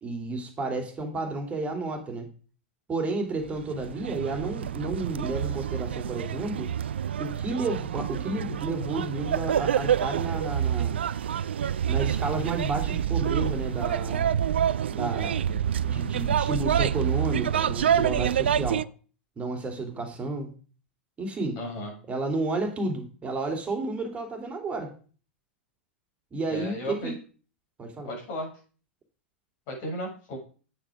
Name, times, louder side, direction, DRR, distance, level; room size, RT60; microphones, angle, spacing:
voice 1, 0.0-2.3 2.9-6.7 7.2-11.0 11.9-14.3 14.9-18.9 19.4-20.5 21.2-21.6 22.1-24.9 26.3-27.1 27.8-28.1, right 2 dB, 20° right, 4 dB, 2.9 m, -31 dB
sound 1, 3.4-18.8, right 9 dB, 70° right, 0.4 m, -27 dB
voice 2, 21.6-21.9 26.5-27.1 28.1-28.5 29.7-30.4, left 1 dB, 45° left, 0 dB, 7.0 m, -34 dB
9.2 x 8.9 x 5.0 m, 0.39 s
figure-of-eight pair, 95°, 6 cm